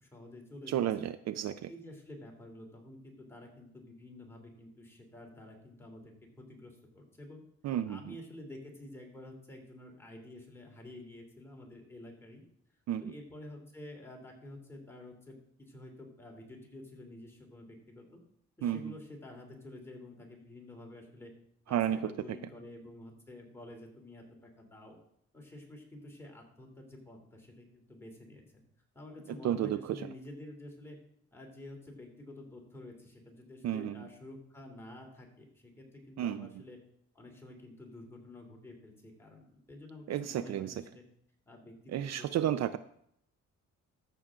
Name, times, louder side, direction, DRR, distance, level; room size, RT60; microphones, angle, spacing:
voice 1, 0.0-0.8 1.7-7.4 7.9-12.4 13.0-18.2 18.6-21.3 21.7-25.0 25.3-28.6 28.9-31.0 31.3-36.8 37.1-41.0 41.5-42.8, left 1 dB, 10° left, 0 dB, 3.0 m, -50 dB
voice 2, 0.7-1.7 7.6-8.2 12.9-13.1 18.6-18.9 21.7-22.1 29.4-30.1 33.6-34.0 36.2-36.5 40.1-40.7 41.9-42.8, right 11 dB, 60° right, 14 dB, 0.5 m, -32 dB
13.5 x 6.9 x 3.7 m, 0.70 s
cardioid pair, 90°, 30 cm